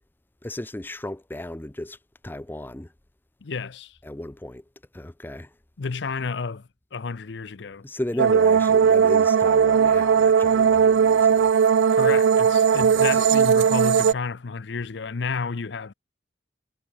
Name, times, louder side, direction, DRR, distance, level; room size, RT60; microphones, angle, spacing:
voice 1, 0.4-2.0 2.2-2.9 4.0-4.6 4.9-5.6 7.8-11.6 12.7-13.3, left 1 dB, 10° left, 0.5 m, -35 dB
voice 2, 3.4-4.0 5.8-7.8 11.9-15.9, left 4 dB, 65° left, 0.6 m, -31 dB
sound 1, 8.2-14.1, right 7 dB, 75° right, 0.4 m, -18 dB
head